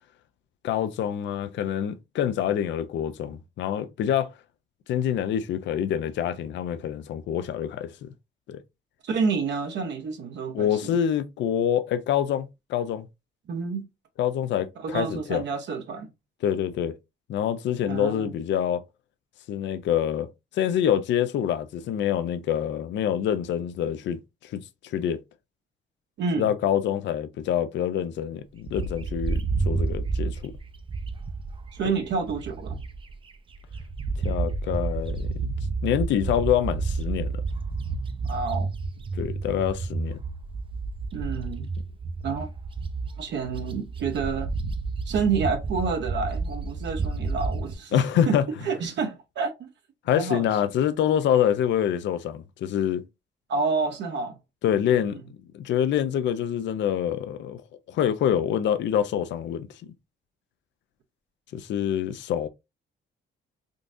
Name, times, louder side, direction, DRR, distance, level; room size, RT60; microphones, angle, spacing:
voice 1, 0.6-4.3 4.9-8.1 8.5-8.6 10.5-13.1 14.2-15.4 16.4-16.9 17.3-18.8 19.5-20.3 20.5-25.2 26.4-30.5 34.2-35.5 35.8-37.3 39.2-40.2 47.9-48.4 50.1-53.0 54.6-55.2 55.5-57.6 57.9-59.7 61.5-62.5, left 9 dB, 65° left, 0.4 m, -26 dB
voice 2, 9.0-11.0 13.5-13.9 14.8-16.1 17.8-18.4 26.2-26.5 31.7-32.8 38.3-38.7 41.1-41.7 42.2-42.5 43.2-44.5 45.0-49.7 50.1-50.4 53.5-54.4 55.0-55.2, right 5 dB, 65° right, 0.7 m, -29 dB
Bird, 28.7-33.1 33.5-47.7, right 4 dB, 25° right, 0.4 m, -30 dB
3.8 x 2.4 x 2.5 m
cardioid pair, 90°, 20 cm